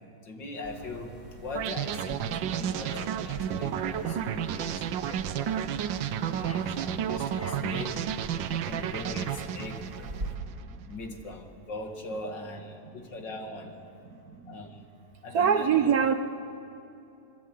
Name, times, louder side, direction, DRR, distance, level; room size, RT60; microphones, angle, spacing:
voice 1, 0.2-3.0 3.2-4.8 5.3-5.8 6.5-8.2 8.5-9.9 10.8-13.8 14.5-14.8 15.2-15.9, left 2 dB, 75° left, 3 dB, 2.9 m, -40 dB
sound 1, 0.6-10.4, right 1 dB, 40° right, 3.4 m, -44 dB
sound 2, 1.6-10.6, right 9 dB, 80° right, 1.5 m, -32 dB
sound 3, 2.7-3.2 3.9-4.3 5.0-5.3 6.1-6.7 7.3-7.7, left 1 dB, 10° left, 0.8 m, -45 dB
voice 2, 15.3-16.1, right 7 dB, 55° right, 8 dB, 1.4 m, -22 dB
27.0 x 22.0 x 8.5 m, 2.8 s
omnidirectional pair, 2.0 m